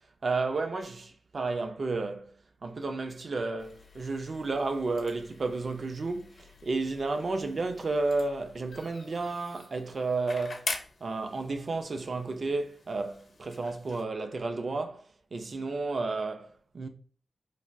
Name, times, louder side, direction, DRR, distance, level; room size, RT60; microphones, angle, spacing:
voice 1, 0.2-2.3 2.6-10.7 11.0-15.1 15.3-16.9, right 3 dB, 55° right, 0.4 m, -32 dB
sound 1, 3.6-14.0, left 3 dB, 65° left, 0.5 m, -45 dB
3.2 x 2.3 x 2.5 m
wide cardioid pair, 80°, 0 cm